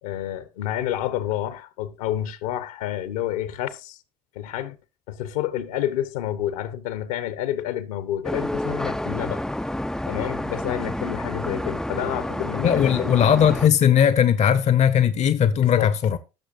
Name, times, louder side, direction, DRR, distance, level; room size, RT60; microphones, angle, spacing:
voice 1, 0.0-4.0 4.3-4.8 5.1-9.4 10.0-13.2 15.6-15.9, left 12 dB, 65° left, 1.2 m, -29 dB
sound 1, 8.2-13.7, left 1 dB, 5° left, 0.5 m, -29 dB
voice 2, 12.6-16.2, left 9 dB, 35° left, 0.9 m, -18 dB
17.5 x 6.6 x 2.6 m
figure-of-eight pair, 65°, 20 cm